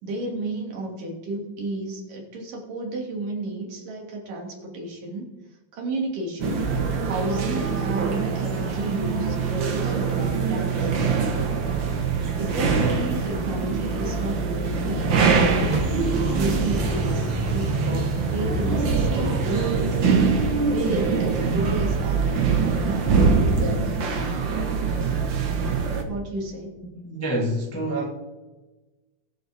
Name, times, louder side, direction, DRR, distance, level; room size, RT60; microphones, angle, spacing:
voice 1, 0.0-5.3 5.7-6.6 7.0-11.7 12.4-15.8 16.2-17.2 17.5-23.9 26.1-26.8, right 2 dB, 80° right, -1 dB, 4.0 m, -32 dB
sound 1, 6.4-26.0, right 5 dB, 55° right, 1.3 m, -24 dB
sound 2, 15.6-21.0, right 1 dB, 15° right, 2.8 m, -30 dB
voice 2, 27.0-28.1, right 1 dB, 20° left, -1 dB, 0.4 m, -27 dB
21.0 x 7.2 x 3.5 m, 1.2 s
omnidirectional pair, 3.7 m